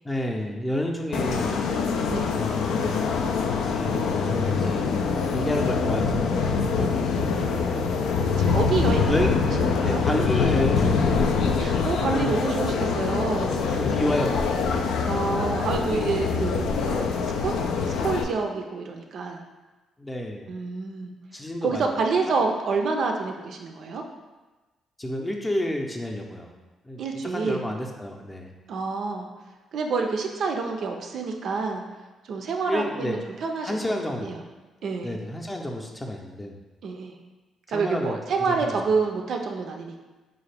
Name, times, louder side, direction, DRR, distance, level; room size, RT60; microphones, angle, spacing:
voice 1, 0.0-1.6 2.3-3.1 3.6-5.0 5.3-6.4 7.5-7.8 9.1-9.3 9.8-11.3 12.1-12.4 13.7-14.6 20.0-20.5 21.3-21.9 25.0-26.5 26.9-27.0 27.3-28.5 32.7-33.2 33.6-34.4 35.0-36.6 37.7-38.2 38.5-38.7, left 1 dB, 15° left, 1 dB, 0.6 m, -30 dB
sound 1, 1.1-18.2, left 5 dB, 80° left, 0.3 m, -24 dB
voice 2, 8.4-9.3 9.6-10.0 11.6-13.6 15.1-17.5 18.0-19.4 20.5-21.1 21.6-24.0 27.0-27.6 28.7-29.3 29.7-31.8 32.2-33.8 34.2-34.4 34.8-35.2 36.8-37.1 37.7-40.0, right 4 dB, 65° right, 3 dB, 0.4 m, -28 dB
3.7 x 2.4 x 3.3 m, 1.2 s
supercardioid pair, 60°, 0 cm